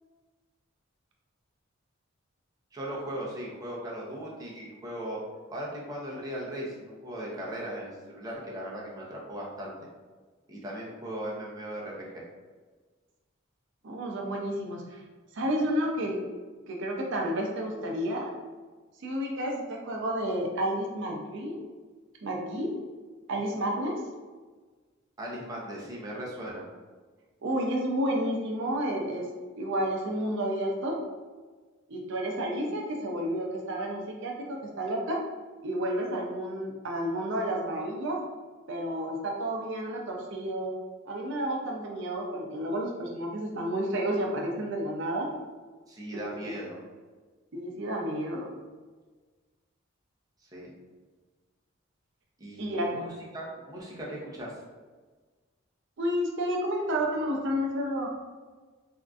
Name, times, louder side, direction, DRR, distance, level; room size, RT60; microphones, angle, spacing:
voice 1, 2.7-5.2 5.5-9.8 10.5-12.2 25.2-26.7 45.9-46.8 50.5-50.7 52.4-53.1 53.3-54.5, right 1 dB, 20° right, -4 dB, 0.6 m, -38 dB
voice 2, 13.8-15.0 15.3-16.2 16.7-18.3 19.0-21.6 22.2-22.7 23.3-24.0 27.4-29.3 29.6-31.0 31.9-35.2 35.6-38.2 38.7-40.7 41.1-45.3 47.5-48.5 52.6-53.1 56.0-58.1, equal, 60° right, 0 dB, 0.5 m, -31 dB
3.5 x 2.5 x 2.3 m, 1.4 s
head